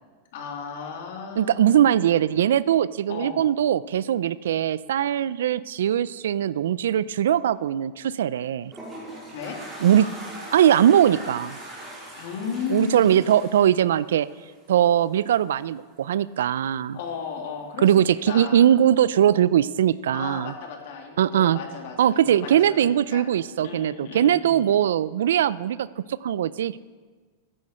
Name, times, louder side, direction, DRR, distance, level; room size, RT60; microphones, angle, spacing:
voice 1, 0.3-1.8 3.1-3.4 9.3-9.6 12.2-13.2 16.9-18.7 20.1-22.8 23.1-23.2 23.6-24.6, left 6 dB, 65° left, 2 dB, 2.4 m, -35 dB
voice 2, 1.4-8.7 9.8-10.1 10.5-11.6 12.7-14.3 14.7-17.0 17.8-20.5 21.2-21.6 22.0-26.8, right 10 dB, 85° right, 19 dB, 0.4 m, -21 dB
Toilet flush, 8.4-14.7, right 1 dB, 10° right, 4.1 m, -40 dB
14.0 x 10.0 x 4.3 m, 1.5 s
supercardioid pair, 145°, 0 cm